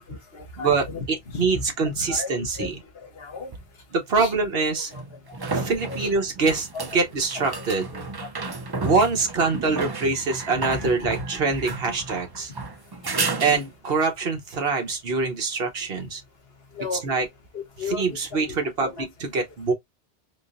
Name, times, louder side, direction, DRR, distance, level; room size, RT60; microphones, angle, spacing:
voice 1, 0.0-1.6 2.0-3.5 4.2-4.3 4.7-5.0 5.3-6.1 6.7-7.1 7.3-8.6 10.6-11.2 11.9-12.0 16.7-17.0 17.5-18.5 18.8-19.1, left 4 dB, 65° left, 1.2 m, -36 dB
voice 2, 1.4-2.7 3.9-4.9 5.5-7.9 8.8-12.5 13.4-16.2 17.0-17.2 18.0-19.7, right 4 dB, 60° right, 1.2 m, -24 dB
sound 1, 3.5-3.6 4.9-14.0 17.4-17.5, right 3 dB, 40° right, 0.3 m, -32 dB
3.7 x 2.8 x 2.5 m
omnidirectional pair, 1.1 m